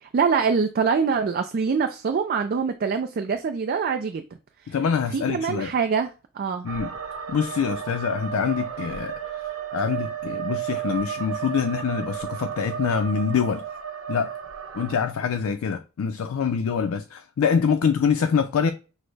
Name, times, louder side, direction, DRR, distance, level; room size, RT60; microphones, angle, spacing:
voice 1, 0.0-4.2 5.1-6.1 6.4-6.7, right 5 dB, 45° right, 0.3 m, -24 dB
voice 2, 4.7-5.7 6.6-6.9 7.3-13.6 14.1-14.3 14.7-18.7, left 6 dB, 85° left, 0.4 m, -25 dB
sound 1, 6.7-14.9, right 9 dB, 80° right, 0.7 m, -33 dB
6.1 x 2.1 x 3.3 m
head